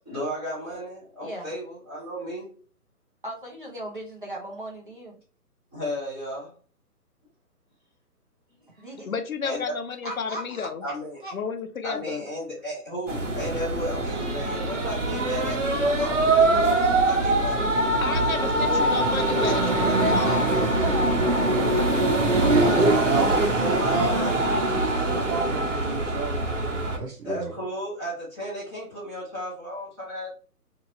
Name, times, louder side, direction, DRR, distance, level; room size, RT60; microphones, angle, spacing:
voice 1, 0.0-2.5 5.7-6.5 9.4-9.7 10.8-11.2 11.8-17.6 22.3-24.7 27.2-30.3, equal, ahead, 1.2 m, -34 dB
voice 2, 3.2-5.1 8.8-9.1 10.0-10.7 11.2-11.3 19.8-22.3, right 1 dB, 35° right, 0.6 m, -37 dB
voice 3, 9.1-10.8 11.3-12.2 18.0-20.4, left 6 dB, 60° left, 0.6 m, -32 dB
sound 1, 13.1-27.0, right 2 dB, 50° right, 1.0 m, -23 dB
voice 4, 22.4-27.5, right 3 dB, 75° right, 1.0 m, -29 dB
3.0 x 2.7 x 2.6 m
hypercardioid pair, 170°, 47 cm